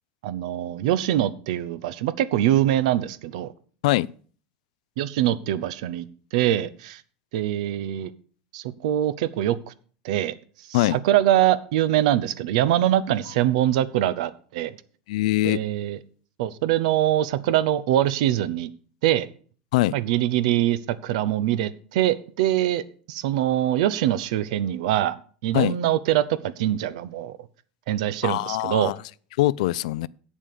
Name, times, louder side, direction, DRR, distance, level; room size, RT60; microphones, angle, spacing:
voice 1, 0.2-3.5 5.0-6.1 6.3-7.0 7.3-8.1 8.5-9.7 10.0-10.3 10.7-14.7 15.4-16.0 16.4-18.7 19.0-19.3 19.9-22.8 23.1-25.2 25.4-27.4 27.9-28.9, right 12 dB, 75° right, 0.8 m, -23 dB
voice 2, 15.1-15.6 19.7-20.0 25.5-25.8 28.2-29.0 29.4-30.1, left 17 dB, 80° left, 0.4 m, -22 dB
8.4 x 7.3 x 6.7 m
supercardioid pair, 150°, 4 cm